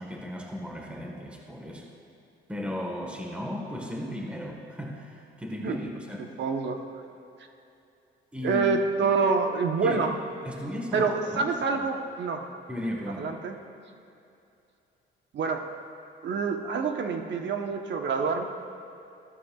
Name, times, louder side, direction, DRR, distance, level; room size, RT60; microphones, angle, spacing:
voice 1, 0.0-1.9 2.5-6.2 8.3-8.6 9.0-9.2 9.8-10.0 10.4-11.9 12.7-13.3, left 1 dB, 5° right, 0 dB, 1.4 m, -35 dB
voice 2, 6.2-6.8 8.4-10.1 10.9-12.4 13.2-13.5 15.3-15.6 16.2-18.4, right 4 dB, 65° right, 4 dB, 1.0 m, -27 dB
14.5 x 12.5 x 2.4 m, 2.7 s
cardioid pair, 90°, 20 cm